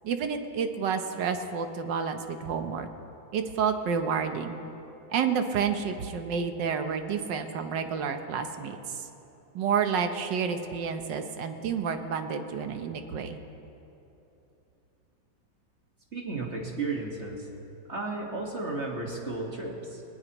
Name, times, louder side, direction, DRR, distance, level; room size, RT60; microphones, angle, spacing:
voice 1, 0.0-2.9 3.3-4.6 5.1-9.0 9.5-13.4, right 6 dB, 70° right, 7 dB, 1.5 m, -30 dB
voice 2, 16.1-17.5 17.9-20.0, right 3 dB, 35° right, -1 dB, 1.8 m, -33 dB
20.5 x 19.5 x 3.0 m, 2.9 s
omnidirectional pair, 2.1 m